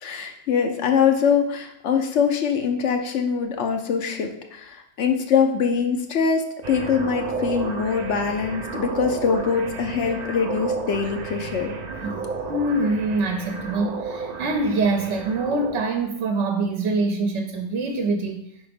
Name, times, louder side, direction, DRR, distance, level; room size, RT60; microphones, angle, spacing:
voice 1, 0.0-11.8, left 6 dB, 75° left, 4 dB, 1.0 m, -23 dB
sound 1, 6.6-15.8, right 4 dB, 50° right, 0.6 m, -32 dB
voice 2, 12.0-18.4, right 2 dB, 70° right, 4 dB, 0.9 m, -24 dB
4.9 x 4.2 x 5.1 m, 0.77 s
omnidirectional pair, 1.2 m